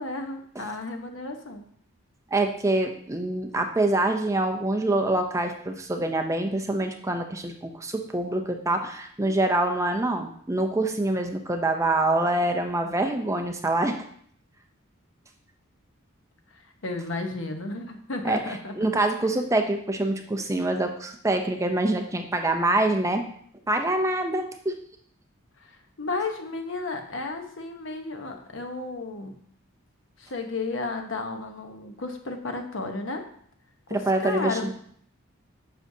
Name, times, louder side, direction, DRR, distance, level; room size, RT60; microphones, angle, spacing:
voice 1, 0.0-1.6 16.5-19.0 25.6-29.4 30.2-33.2 33.9-34.7, left 3 dB, 65° left, 5 dB, 1.0 m, -33 dB
voice 2, 2.3-14.1 18.2-23.2 23.7-24.8 33.9-34.7, right 2 dB, 15° right, 4 dB, 0.5 m, -25 dB
9.5 x 6.2 x 2.7 m, 0.62 s
head